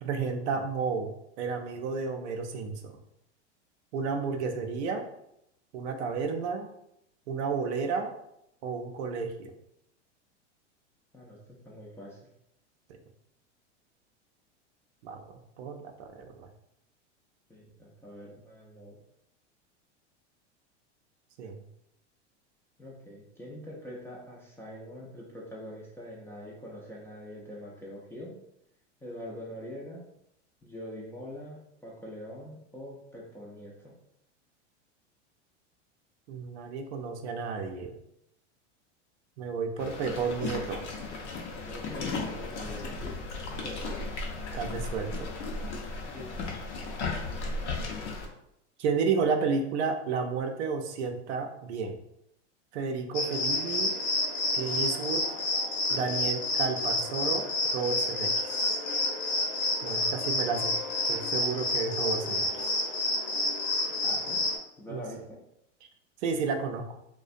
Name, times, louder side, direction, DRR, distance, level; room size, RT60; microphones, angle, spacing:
voice 1, 0.0-3.0 3.9-5.1 5.7-6.7 7.3-8.1 8.6-9.5 15.0-15.2 15.6-16.5 21.4-21.6 36.3-37.9 39.4-40.9 44.5-45.3 48.8-52.0 52.7-53.9 54.5-55.2 55.9-58.5 59.8-60.7 61.1-62.7 64.9-65.0 66.2-66.9, right 5 dB, 70° right, 4 dB, 0.5 m, -32 dB
voice 2, 11.6-12.2 17.5-19.0 22.8-28.4 29.0-30.0 30.6-33.9 41.5-44.1 46.1-46.6 60.4-60.6 64.0-64.4 64.8-65.4, equal, 5° left, -4 dB, 0.4 m, -44 dB
sound 1, 39.8-48.3, left 3 dB, 70° left, 0.7 m, -35 dB
sound 2, 53.1-64.6, left 2 dB, 50° left, 1.0 m, -29 dB
2.4 x 2.1 x 2.5 m, 0.79 s
hypercardioid pair, 100°, 36 cm